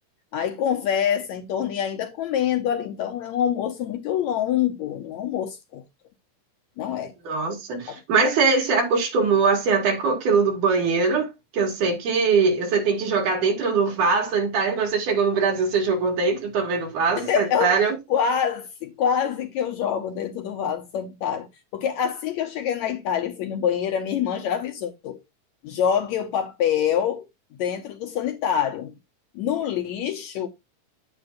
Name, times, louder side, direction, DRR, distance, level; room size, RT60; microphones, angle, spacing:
voice 1, 0.3-5.8 6.8-7.1 7.9-8.0 17.2-17.8 18.1-21.5 21.7-25.2 25.6-27.2 27.6-28.9 29.4-30.5, left 8 dB, 70° left, 1.9 m, -25 dB
voice 2, 7.3-18.0, right 4 dB, 70° right, 3.9 m, -22 dB
9.6 x 7.9 x 2.6 m
omnidirectional pair, 3.7 m